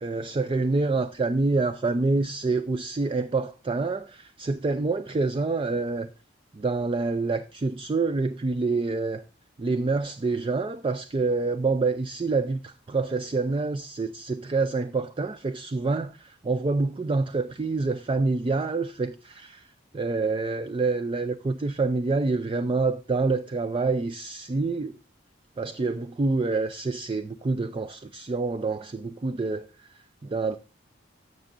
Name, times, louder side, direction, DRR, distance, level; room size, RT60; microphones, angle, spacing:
voice 1, 0.0-6.1 6.5-9.2 9.6-25.0 25.6-30.6, right 3 dB, 30° right, 0.4 m, -27 dB
13.0 x 6.7 x 2.5 m
head